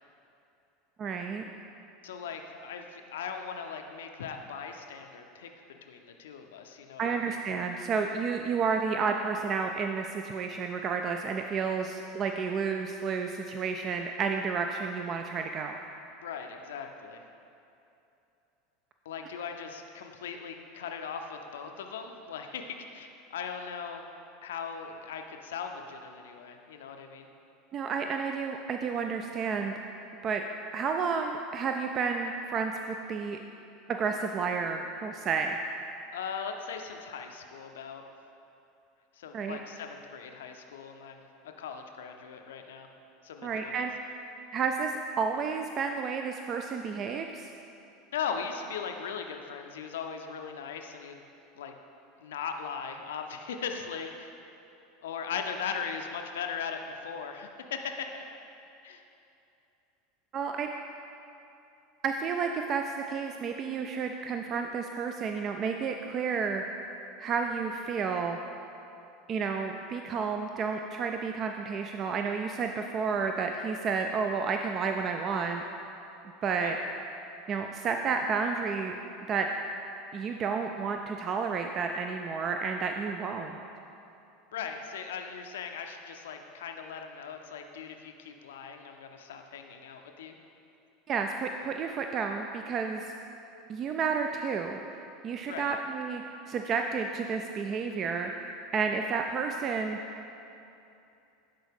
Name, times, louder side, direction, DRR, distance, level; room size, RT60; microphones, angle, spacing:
voice 1, 1.0-1.4 7.0-15.8 27.7-29.7 30.2-30.4 30.7-33.4 33.9-35.6 39.3-39.6 43.4-43.9 44.5-47.5 60.3-60.7 62.0-66.6 67.2-68.4 69.3-75.6 76.4-76.8 77.5-79.0 79.3-79.5 80.1-83.6 91.1-93.1 93.7-94.8 95.2-98.4 98.7-100.0, right 5 dB, 40° right, 4 dB, 0.3 m, -31 dB
voice 2, 2.0-5.5 5.8-7.4 16.2-17.2 19.1-24.0 24.4-27.3 36.1-38.0 39.1-42.9 43.2-43.8 48.1-51.2 51.6-51.7 52.2-54.3 55.0-58.2 58.8-59.0 76.6-76.9 84.5-90.4 95.5-95.8, left 6 dB, 75° left, 5 dB, 0.4 m, -39 dB
10.0 x 4.0 x 3.5 m, 2.8 s
hypercardioid pair, 80°, 0 cm